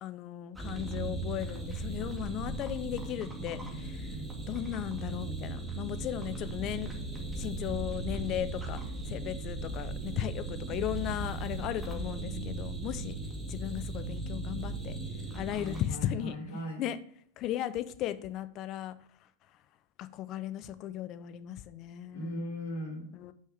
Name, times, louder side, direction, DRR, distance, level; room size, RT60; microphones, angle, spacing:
voice 1, 0.0-4.2 4.5-6.9 7.4-8.8 9.1-13.1 13.5-15.0 15.3-16.4 16.8-17.0 17.4-18.9 20.0-22.4 23.1-23.3, left 12 dB, 40° left, 13 dB, 0.7 m, -36 dB
sound 1, 0.6-15.9, right 2 dB, 5° right, 2.1 m, -37 dB
voice 2, 15.5-16.8 22.1-23.1, equal, 70° left, 0 dB, 3.5 m, -38 dB
6.3 x 5.6 x 7.1 m, 0.63 s
hypercardioid pair, 95°, 0 cm